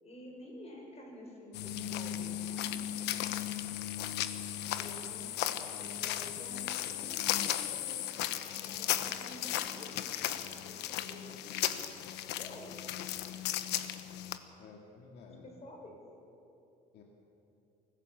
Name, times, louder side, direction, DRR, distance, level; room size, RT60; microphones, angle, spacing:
voice 1, 0.0-2.8 4.7-11.8 12.3-13.0 15.4-16.0, left 1 dB, 40° left, 0 dB, 6.4 m, -50 dB
sound 1, 1.5-14.4, left 12 dB, 90° left, 1.0 m, -36 dB
voice 2, 3.4-3.9 14.6-15.6 16.9-17.0, left 5 dB, 75° left, 0 dB, 2.2 m, -53 dB
24.5 x 14.5 x 7.3 m, 2.8 s
cardioid pair, 110°, 17 cm